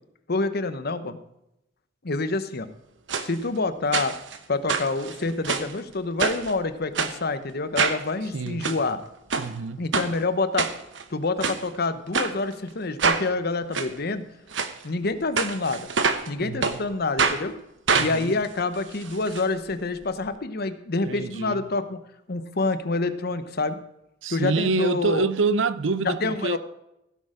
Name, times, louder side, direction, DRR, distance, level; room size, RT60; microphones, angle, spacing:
voice 1, 0.3-1.2 2.0-2.7 3.2-4.2 4.5-9.0 9.8-10.7 11.1-14.2 14.8-15.9 16.3-17.5 18.0-22.0 22.3-23.8 24.3-25.3 26.0-26.6, left 3 dB, 55° left, 0.9 m, -27 dB
sound 1, 3.1-3.3 3.9-4.4 4.7-5.7 6.2-6.5 6.9-7.1 7.7-8.0 8.5-8.8 9.3-9.5 9.9-10.1 10.6-11.0 11.4-11.6 12.1-12.3 13.0-13.2 13.7-13.9 14.5-14.7 15.4-16.3 16.6-16.8 17.2-17.4 17.9-19.4 19.7-19.8 20.0-20.1, right 5 dB, 70° right, 1.0 m, -25 dB
voice 2, 8.3-8.7 9.4-9.9 16.4-16.8 17.9-18.3 21.0-21.6 24.2-26.6, right 3 dB, 85° right, 0.7 m, -27 dB
16.0 x 6.6 x 5.0 m
head